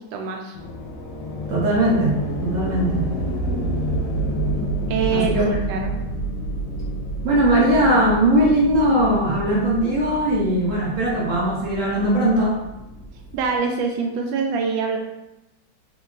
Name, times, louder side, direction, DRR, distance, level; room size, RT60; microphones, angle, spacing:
voice 1, 0.1-0.6 4.9-5.3 5.7-5.9 13.3-15.0, right 5 dB, 90° right, 3 dB, 1.3 m, -24 dB
sound 1, 0.5-13.6, right 1 dB, 70° left, 1.1 m, -29 dB
voice 2, 1.5-3.1 5.1-5.8 7.2-12.6, right 1 dB, 65° right, -4 dB, 0.7 m, -20 dB
3.4 x 2.9 x 2.3 m, 0.94 s
omnidirectional pair, 2.0 m